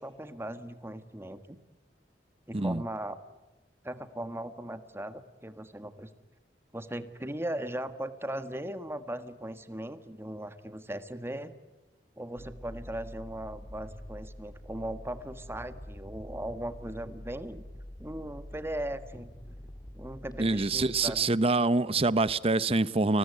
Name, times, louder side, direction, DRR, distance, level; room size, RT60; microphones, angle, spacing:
voice 1, 0.0-1.6 2.5-3.2 3.8-6.1 6.7-11.5 12.2-17.6 18.0-19.3 19.9-21.3, right 1 dB, 15° right, 1.5 m, -38 dB
sound 1, 12.4-21.2, left 1 dB, 20° left, 1.8 m, -46 dB
voice 2, 20.4-23.2, right 3 dB, 35° right, 0.8 m, -25 dB
29.5 x 20.0 x 9.7 m
head